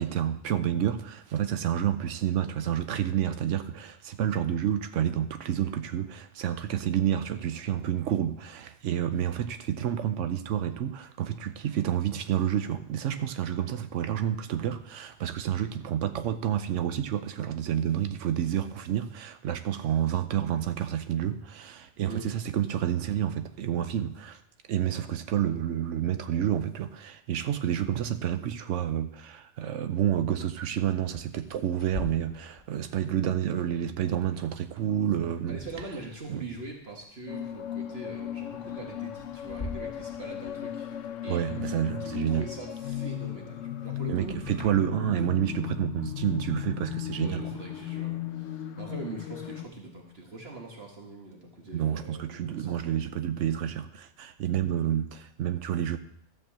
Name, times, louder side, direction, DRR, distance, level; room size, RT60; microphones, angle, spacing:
voice 1, 0.0-24.4 24.7-35.6 36.3-36.4 41.3-42.5 44.1-47.5 51.7-56.0, right 10 dB, 90° right, 9 dB, 1.0 m, -29 dB
sound 1, 29.2-29.3 29.7-41.5 41.9-45.4, left 3 dB, 45° left, 2.3 m, -47 dB
voice 2, 35.5-40.9 41.2-41.4 42.0-44.4 47.2-53.0, right 3 dB, 55° right, 0 dB, 1.7 m, -42 dB
sound 2, 37.3-49.6, left 11 dB, 85° left, 1.0 m, -36 dB
13.0 x 4.6 x 7.4 m, 0.70 s
omnidirectional pair, 1.2 m